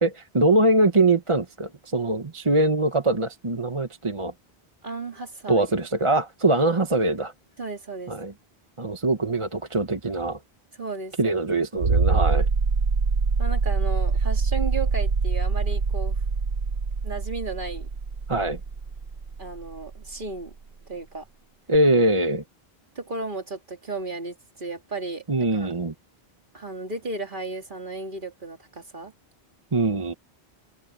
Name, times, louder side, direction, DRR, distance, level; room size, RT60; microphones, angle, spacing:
voice 1, 0.0-4.3 5.5-7.3 8.1-8.3 8.8-10.4 11.2-12.5 18.3-18.6 21.7-22.4 25.3-25.9 29.7-30.1, right 2 dB, 30° right, 1.1 m, -22 dB
voice 2, 4.8-5.7 7.6-8.1 10.8-11.4 13.4-16.2 17.0-17.9 19.4-20.5 20.9-21.3 23.0-25.7 26.5-29.1, right 3 dB, 55° right, 2.4 m, -34 dB
sound 1, 11.8-20.2 21.7-21.8, right 4 dB, 75° right, 1.4 m, -24 dB
omnidirectional pair, 1.0 m